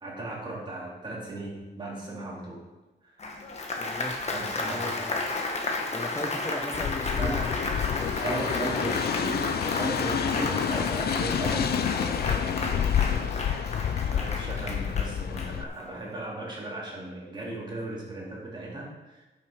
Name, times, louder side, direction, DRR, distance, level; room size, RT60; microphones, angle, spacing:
voice 1, 0.0-2.7 3.0-3.3 4.3-4.9 7.1-7.5 8.1-13.5 14.0-19.2, right 2 dB, 25° right, -4 dB, 2.5 m, -37 dB
Applause, 3.2-15.9, left 2 dB, 35° left, 1.3 m, -33 dB
voice 2, 3.8-4.3 4.5-5.4 5.9-9.2, left 2 dB, 15° left, 7 dB, 0.6 m, -38 dB
sound 1, 6.7-15.6, left 8 dB, 55° left, 0.5 m, -29 dB
10.5 x 6.3 x 4.9 m, 1.1 s
wide cardioid pair, 165°, 20 cm